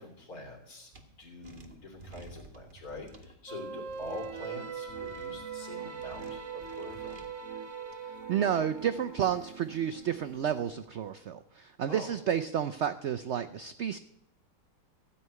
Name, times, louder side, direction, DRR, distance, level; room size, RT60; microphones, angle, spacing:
voice 1, 0.0-7.2 11.9-12.1, left 2 dB, 55° left, 2 dB, 3.5 m, -45 dB
sound 1, 0.9-1.0 1.4-3.3 3.9-4.4 4.9-5.5 6.0-7.3, right 3 dB, 30° right, 1.5 m, -52 dB
sound 2, 3.5-10.7, right 6 dB, 50° right, 1.4 m, -41 dB
voice 2, 8.3-14.0, right 9 dB, 80° right, 11 dB, 0.6 m, -31 dB
15.5 x 5.8 x 9.4 m, 0.80 s
omnidirectional pair, 1.9 m